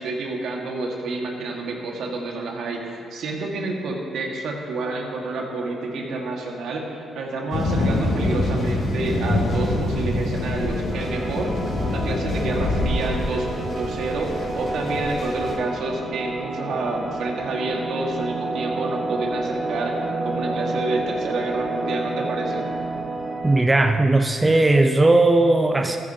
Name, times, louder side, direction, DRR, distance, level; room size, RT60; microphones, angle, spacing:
voice 1, 0.0-11.5 11.8-20.0 20.2-22.7, right 3 dB, 75° right, 0 dB, 1.7 m, -29 dB
sound 1, 7.5-15.6, left 2 dB, 55° left, 2.3 m, -25 dB
sound 2, 10.9-23.6, right 2 dB, 40° right, 1.1 m, -30 dB
voice 2, 23.4-26.0, right 2 dB, 20° right, 5 dB, 0.5 m, -17 dB
14.5 x 10.0 x 2.8 m, 2.3 s
cardioid pair, 90°, 0 cm